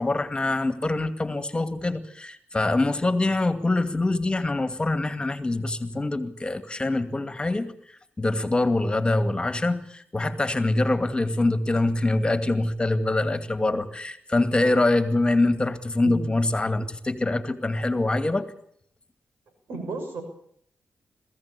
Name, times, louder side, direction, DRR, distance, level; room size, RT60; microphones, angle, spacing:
voice 1, 0.0-18.5, left 2 dB, 25° left, 9 dB, 2.4 m, -24 dB
voice 2, 19.7-20.2, right 3 dB, 90° right, 6 dB, 6.4 m, -33 dB
21.5 x 15.5 x 8.5 m, 0.66 s
cardioid pair, 60°, 4 cm